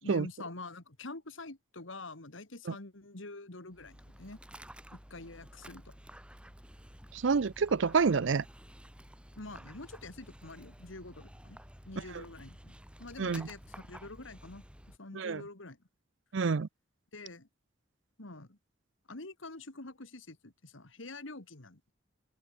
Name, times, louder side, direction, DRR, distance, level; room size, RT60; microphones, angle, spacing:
voice 1, 0.0-4.4 4.9-6.0 9.4-11.6 11.9-13.6 13.9-15.8 17.1-17.5 18.2-18.6 19.1-21.9, left 2 dB, 75° left, 2.3 m, -46 dB
Dog, 3.7-15.0, equal, 5° right, 5.1 m, -52 dB
voice 2, 7.1-8.4 13.2-13.5 15.1-15.4 16.3-16.7, right 5 dB, 70° right, 0.5 m, -28 dB
open air
head